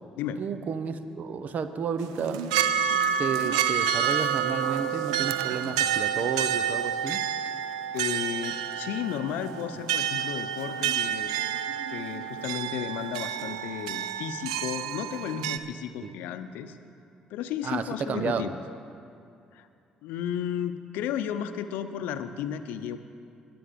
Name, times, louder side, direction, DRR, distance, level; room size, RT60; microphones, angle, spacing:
voice 1, 0.4-2.4 3.2-7.2 16.0-16.2 17.6-18.5, right 6 dB, 55° right, 11 dB, 0.8 m, -32 dB
sound 1, 2.0-15.6, right 8 dB, 90° right, 0.4 m, -29 dB
voice 2, 7.9-11.3 11.9-16.8 17.3-18.6 19.5-19.7 20.0-23.0, left 9 dB, 75° left, 10 dB, 0.7 m, -33 dB
20.5 x 7.8 x 5.2 m, 2.5 s
hypercardioid pair, 55°, 3 cm